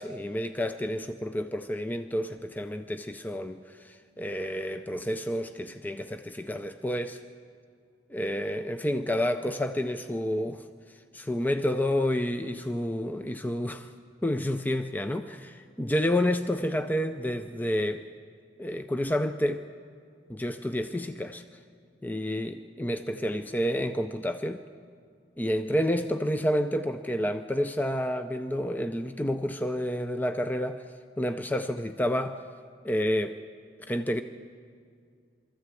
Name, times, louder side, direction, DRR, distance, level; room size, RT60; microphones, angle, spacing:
voice 1, 0.0-7.2 8.1-10.6 11.1-13.9 14.2-18.1 18.6-19.7 20.3-21.4 22.0-24.6 25.4-30.9 31.2-32.4 32.8-33.4 33.9-34.2, equal, 10° left, 8 dB, 0.4 m, -29 dB
22.5 x 14.0 x 8.3 m, 2.2 s
head